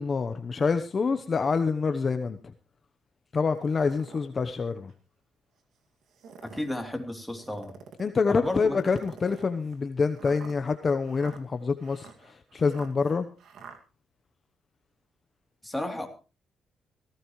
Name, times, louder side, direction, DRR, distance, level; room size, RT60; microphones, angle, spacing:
voice 1, 0.0-2.4 3.3-4.9 8.0-13.3, left 4 dB, 40° left, 8 dB, 1.0 m, -26 dB
sound 1, 3.6-4.3 4.9-5.0 6.0-6.7 7.4-8.2 8.8-13.8, right 6 dB, 70° right, 2.3 m, -48 dB
voice 2, 6.4-7.7 8.3-8.8 15.6-16.1, left 1 dB, 5° left, 3 dB, 3.2 m, -32 dB
18.0 x 16.0 x 3.2 m, 0.34 s
cardioid pair, 90°, 0 cm